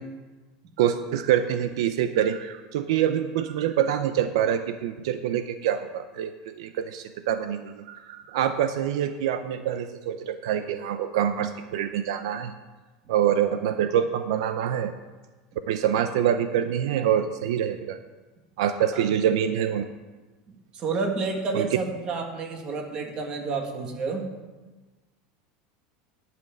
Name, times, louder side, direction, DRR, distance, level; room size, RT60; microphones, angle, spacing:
voice 1, 0.8-12.5 13.1-14.9 15.7-18.0 18.6-19.9 21.5-21.7, right 9 dB, 80° right, 9 dB, 0.7 m, -25 dB
voice 2, 20.5-24.3, right 4 dB, 30° right, 3 dB, 1.6 m, -30 dB
11.0 x 6.0 x 8.8 m, 1.2 s
supercardioid pair, 165°, 3 cm